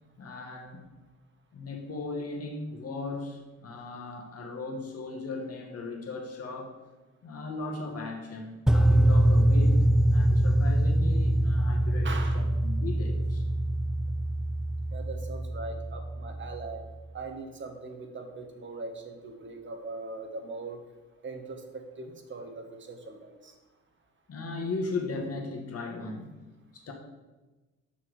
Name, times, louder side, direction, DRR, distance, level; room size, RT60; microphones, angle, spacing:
voice 1, 0.2-0.9 1.5-6.8 7.2-9.8 10.1-13.4 24.3-26.9, left 3 dB, 50° left, 2 dB, 1.7 m, -37 dB
sound 1, 8.7-16.8, right 1 dB, ahead, 0.3 m, -24 dB
voice 2, 12.0-12.4 14.9-16.8 17.1-20.8 21.2-23.5, right 3 dB, 40° right, 5 dB, 1.2 m, -40 dB
6.1 x 5.9 x 4.8 m, 1.2 s
cardioid pair, 90°, 30 cm